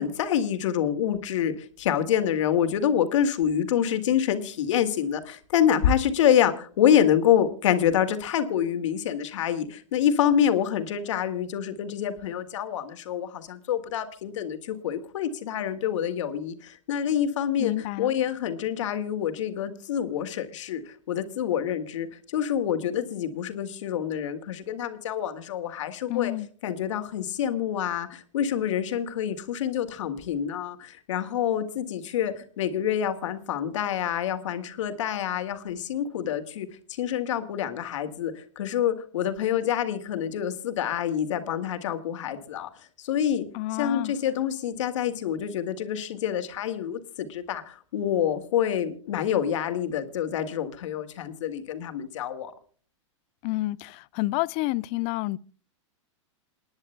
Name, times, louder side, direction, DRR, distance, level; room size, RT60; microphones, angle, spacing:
voice 1, 0.0-26.3 26.6-52.5, left 9 dB, 70° left, 2.1 m, -27 dB
voice 2, 17.6-18.1 26.1-26.5 43.5-44.1 53.4-55.4, left 19 dB, 40° left, 0.5 m, -29 dB
28.5 x 10.5 x 2.2 m
hypercardioid pair, 125°, 16 cm